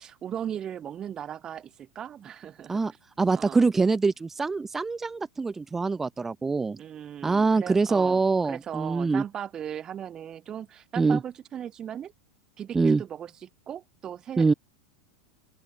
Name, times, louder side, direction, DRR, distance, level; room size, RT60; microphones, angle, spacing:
voice 1, 0.0-2.8 3.3-3.6 6.8-12.1 12.6-14.5, right 9 dB, 30° right, 1.2 m, -37 dB
voice 2, 3.2-6.8 7.2-9.2 11.0-11.2 12.7-13.0 14.4-14.5, right 4 dB, 15° right, 0.8 m, -24 dB
open air
figure-of-eight pair, 85°, 2 cm